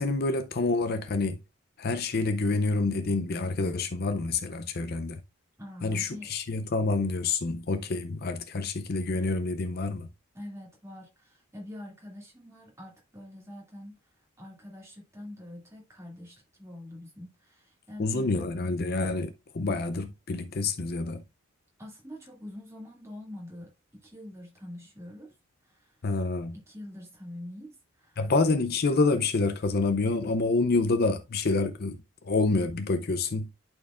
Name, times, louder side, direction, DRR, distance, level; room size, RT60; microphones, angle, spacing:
voice 1, 0.0-1.4 1.8-5.2 5.8-10.1 18.0-21.2 26.0-26.6 28.2-32.0 32.2-33.5, left 3 dB, 45° left, 0.5 m, -27 dB
voice 2, 5.6-6.3 10.3-18.4 21.8-25.4 25.6-26.0 26.5-28.2, left 1 dB, 15° right, 2.3 m, -45 dB
11.0 x 4.5 x 2.4 m
head